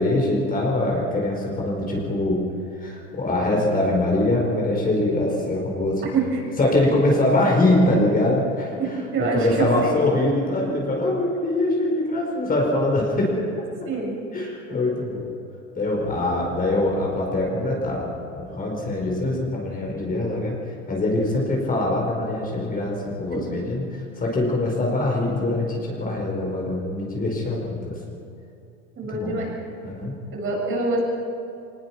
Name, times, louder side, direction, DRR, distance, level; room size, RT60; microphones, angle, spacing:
voice 1, 0.0-2.4 2.8-6.0 6.6-13.5 14.3-15.3 15.7-20.6 20.9-28.0 29.1-29.4 29.8-30.1, left 1 dB, 25° left, -1 dB, 4.8 m, -23 dB
voice 2, 6.1-6.4 8.8-10.1 13.9-14.2 23.3-23.4 29.0-29.5 30.3-31.0, right 3 dB, 35° right, -2 dB, 7.3 m, -25 dB
23.0 x 20.0 x 5.9 m, 2.6 s
hypercardioid pair, 100°, 36 cm